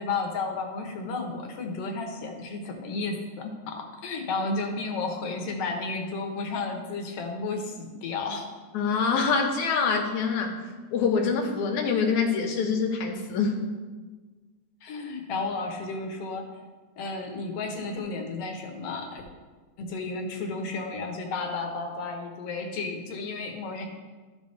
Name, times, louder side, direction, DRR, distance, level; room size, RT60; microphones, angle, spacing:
voice 1, 0.0-8.5 14.8-16.5 17.0-19.2 19.8-23.9, left 3 dB, 65° left, 3 dB, 1.7 m, -32 dB
voice 2, 8.7-10.5 10.9-13.6, left 5 dB, 90° left, 2 dB, 2.4 m, -25 dB
13.0 x 5.4 x 3.4 m, 1.3 s
omnidirectional pair, 3.3 m